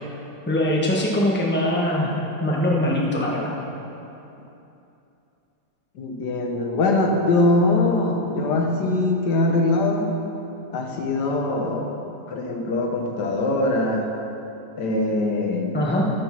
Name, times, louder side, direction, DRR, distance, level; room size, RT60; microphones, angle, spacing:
voice 1, 0.5-3.5 15.7-16.1, left 1 dB, 10° left, -3 dB, 1.0 m, -22 dB
voice 2, 5.9-10.1 10.7-11.9 12.3-14.1 14.8-15.8, left 2 dB, 85° left, 2 dB, 1.6 m, -22 dB
13.5 x 5.3 x 5.8 m, 2.8 s
omnidirectional pair, 1.7 m